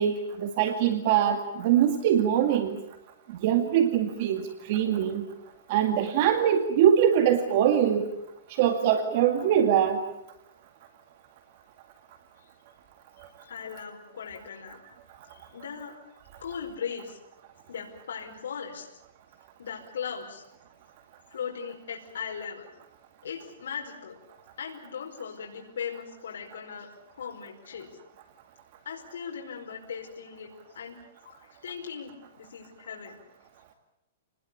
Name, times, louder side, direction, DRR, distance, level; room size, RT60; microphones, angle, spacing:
voice 1, 0.0-2.8 3.4-4.4 4.7-5.2 5.7-8.0 8.6-10.0, right 9 dB, 40° right, 6 dB, 2.2 m, -23 dB
voice 2, 13.4-14.8 15.3-15.9 16.4-17.2 17.7-18.9 19.6-20.4 21.3-22.7 23.2-24.2 24.6-26.9 27.2-27.9 28.8-31.0 31.2-33.2, left 7 dB, 90° left, -1 dB, 4.9 m, -38 dB
28.5 x 20.5 x 8.5 m, 0.83 s
hypercardioid pair, 165°, 0 cm